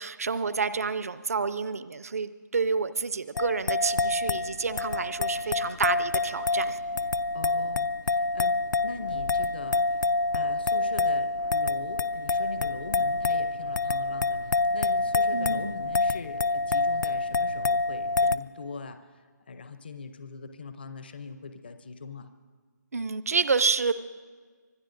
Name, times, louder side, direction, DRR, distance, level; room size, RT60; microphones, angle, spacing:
voice 1, 0.0-6.8 15.3-15.8 22.9-23.9, right 5 dB, 50° right, 15 dB, 0.5 m, -29 dB
sound 1, 3.4-18.4, left 3 dB, 85° left, 0.4 m, -27 dB
voice 2, 7.3-22.3, left 4 dB, 30° left, 8 dB, 0.6 m, -41 dB
25.5 x 18.5 x 2.5 m, 1.6 s
figure-of-eight pair, 175°, 10 cm